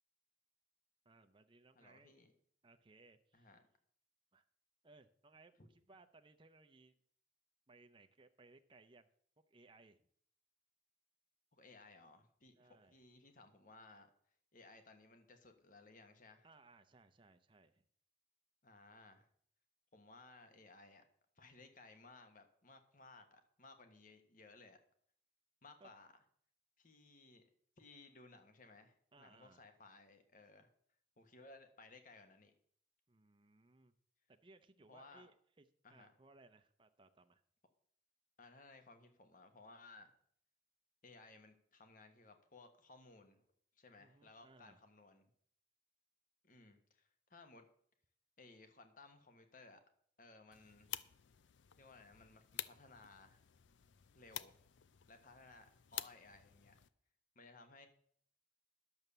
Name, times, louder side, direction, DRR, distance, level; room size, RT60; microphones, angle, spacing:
voice 1, 1.0-2.2 2.6-3.6 4.3-4.4 4.8-7.0 7.7-9.1 9.5-10.1 12.5-13.0 16.4-17.8 25.8-25.9 29.1-29.7 33.1-33.9 34.3-37.4 44.0-44.8, right 3 dB, 25° right, 7 dB, 0.6 m, -65 dB
voice 2, 1.7-2.3 3.3-3.6 5.6-5.7 11.5-14.1 14.5-16.5 18.6-19.3 19.9-21.0 21.4-24.8 25.6-26.1 26.8-27.4 27.8-30.7 31.2-32.5 34.9-35.3 35.8-36.1 38.4-40.1 41.0-43.4 43.8-45.3 46.4-47.7 48.4-49.8 50.2-51.0 51.8-53.4 54.1-54.6 55.1-56.7 57.3-57.9, left 3 dB, 45° left, 7 dB, 1.4 m, -60 dB
sound 1, 50.5-56.9, left 12 dB, 80° left, 0.5 m, -50 dB
11.0 x 7.1 x 6.7 m, 0.62 s
head